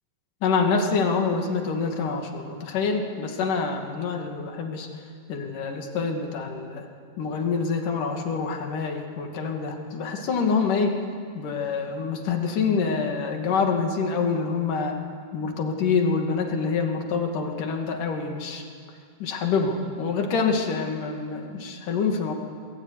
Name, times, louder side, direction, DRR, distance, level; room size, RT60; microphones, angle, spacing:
voice 1, 0.4-4.9 5.3-6.9 7.2-11.0 11.4-15.0 15.3-18.6 19.2-22.3, left 5 dB, 75° left, 3 dB, 4.0 m, -26 dB
27.0 x 21.0 x 9.8 m, 2.2 s
omnidirectional pair, 3.7 m